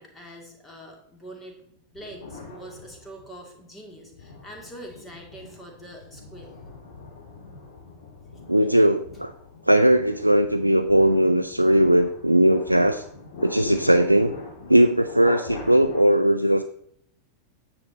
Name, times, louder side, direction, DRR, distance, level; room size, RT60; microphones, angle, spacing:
voice 1, 0.0-6.5, right 1 dB, 10° left, 1 dB, 2.5 m, -44 dB
sound 1, 2.0-3.4 3.9-16.0, left 3 dB, 55° left, 2.5 m, -41 dB
voice 2, 8.5-9.3 9.7-13.0 13.4-14.3 14.7-16.6, right 1 dB, 85° right, 8 dB, 0.3 m, -19 dB
9.5 x 7.0 x 4.1 m, 0.69 s
figure-of-eight pair, 90°, 0 cm